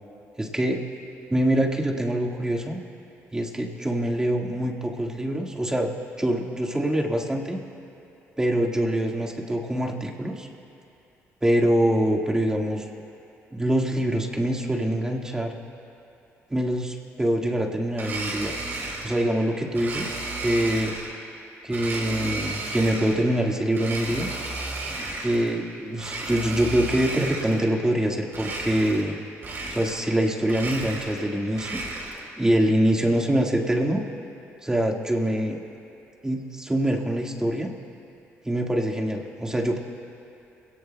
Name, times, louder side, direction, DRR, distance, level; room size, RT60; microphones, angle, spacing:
voice 1, 0.4-0.8 1.3-2.8 3.3-7.6 8.4-10.5 11.4-12.9 13.5-15.6 16.5-18.5 19.0-20.9 21.6-24.3 25.2-29.2 29.7-31.8 32.4-34.0 34.6-35.6 36.2-37.7 38.4-39.8, right 1 dB, 10° right, 0 dB, 1.7 m, -24 dB
Domestic sounds home sounds, 17.9-19.3 19.8-21.2 21.7-23.3 23.7-25.5 25.9-27.7 28.3-29.1 29.4-30.2 30.4-32.3, right 2 dB, 50° right, 3.5 m, -33 dB
22.5 x 17.5 x 2.2 m, 2.7 s
cardioid pair, 85°, 5 cm